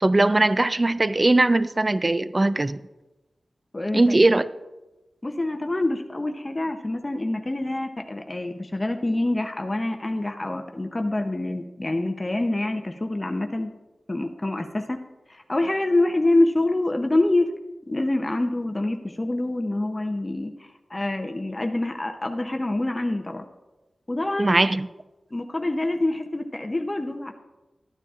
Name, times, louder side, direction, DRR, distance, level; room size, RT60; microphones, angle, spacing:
voice 1, 0.0-2.8 3.9-4.4 24.4-24.9, right 2 dB, 35° right, 15 dB, 0.3 m, -20 dB
voice 2, 5.2-13.7 14.1-15.0 15.3-17.5 17.9-23.4 24.1-24.6 25.3-27.3, left 2 dB, 30° left, 4 dB, 0.6 m, -26 dB
13.5 x 9.6 x 2.4 m, 1.1 s
wide cardioid pair, 60°, 0 cm